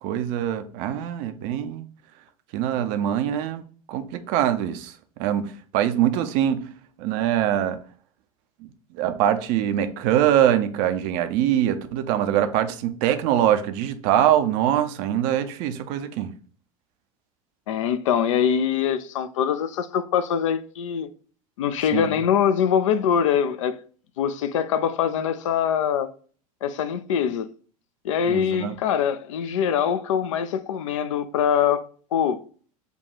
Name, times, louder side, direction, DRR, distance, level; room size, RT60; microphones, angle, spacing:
voice 1, 0.0-1.9 2.5-3.6 3.9-4.9 5.2-6.7 7.0-7.8 8.9-16.3 21.9-22.1 28.3-28.7, right 11 dB, 45° right, 0.5 m, -23 dB
voice 2, 17.7-21.1 21.6-23.7 24.2-26.1 26.6-27.5 28.0-31.8 32.1-32.4, left 8 dB, 60° left, 0.5 m, -23 dB
5.3 x 2.3 x 4.4 m
figure-of-eight pair, 80°, 19 cm